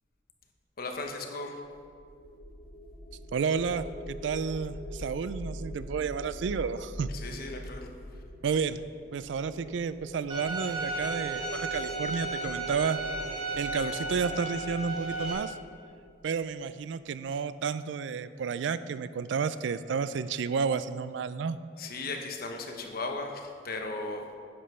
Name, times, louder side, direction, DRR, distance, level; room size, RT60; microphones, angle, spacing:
voice 1, 0.8-1.6 7.1-7.9 21.8-24.2, left 3 dB, 50° left, 3 dB, 1.0 m, -36 dB
sound 1, 1.7-16.8, equal, 30° left, 1.1 m, -43 dB
voice 2, 3.3-7.1 8.4-8.8 9.1-13.0 13.6-15.5 16.2-21.6, right 6 dB, 70° right, 14 dB, 0.3 m, -31 dB
Bowed string instrument, 10.3-15.3, right 2 dB, 30° right, 2.5 m, -34 dB
9.7 x 5.2 x 5.7 m, 2.2 s
head